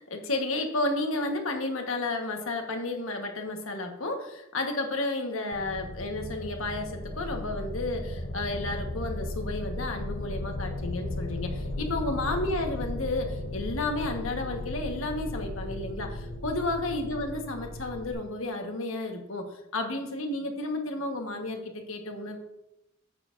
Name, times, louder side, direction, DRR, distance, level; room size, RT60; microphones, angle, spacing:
voice 1, 0.0-22.4, left 2 dB, 70° left, 3 dB, 1.4 m, -32 dB
sound 1, 5.5-18.1, left 2 dB, 50° left, 0.9 m, -36 dB
9.6 x 8.5 x 2.6 m, 0.86 s
head